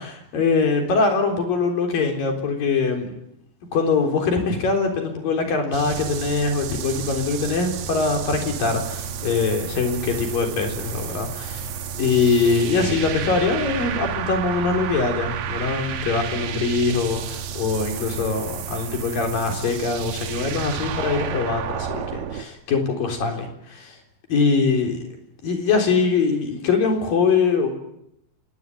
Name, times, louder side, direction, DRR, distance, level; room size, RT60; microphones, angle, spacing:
voice 1, 0.0-3.1 3.7-11.7 12.0-24.0 24.3-25.0 25.4-27.7, left 4 dB, 45° left, 3 dB, 5.2 m, -23 dB
sound 1, 5.7-22.4, right 7 dB, 65° right, 2.3 m, -31 dB
26.5 x 20.0 x 9.1 m, 0.78 s
omnidirectional pair, 5.9 m